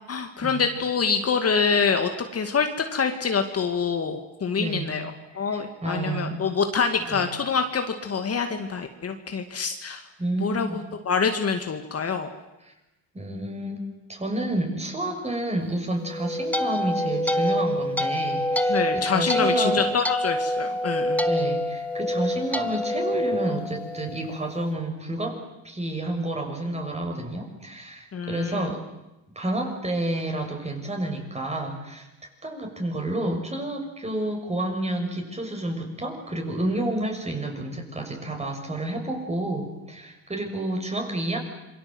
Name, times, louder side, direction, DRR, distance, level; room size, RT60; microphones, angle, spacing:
voice 1, 0.0-10.0 10.4-12.3 18.7-21.3 28.1-28.7, left 5 dB, 40° left, 6 dB, 2.3 m, -26 dB
voice 2, 4.6-5.0 5.3-6.4 7.1-7.3 10.2-10.8 12.6-12.7 13.1-19.9 21.3-28.8 29.3-32.1 32.4-41.4, right 1 dB, 15° right, 3 dB, 6.5 m, -30 dB
sound 1, 16.0-24.4, left 1 dB, 5° left, 1.5 m, -26 dB
27.5 x 23.0 x 8.0 m, 0.98 s
cardioid pair, 100°, 37 cm